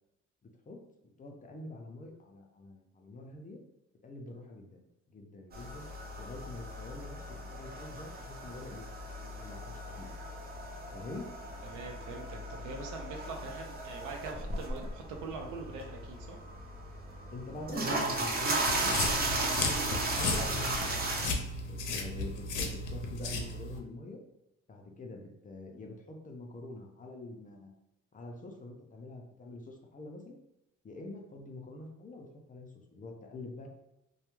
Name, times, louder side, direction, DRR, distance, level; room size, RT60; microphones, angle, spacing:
voice 1, 1.2-3.6 4.0-4.8 5.1-5.9 6.2-8.9 9.2-10.1 10.9-11.3 17.3-19.0 19.5-20.9 21.7-24.2 24.7-27.7 28.1-30.4 30.8-33.7, left 2 dB, 25° left, 2 dB, 0.4 m, -45 dB
sound 1, 5.5-21.3, right 2 dB, 30° right, 0.5 m, -36 dB
voice 2, 11.6-16.4, right 4 dB, 85° right, 2 dB, 0.6 m, -43 dB
sound 2, 18.7-23.8, left 3 dB, 80° left, 0.5 m, -35 dB
2.2 x 2.1 x 3.0 m, 0.90 s
cardioid pair, 90°, 30 cm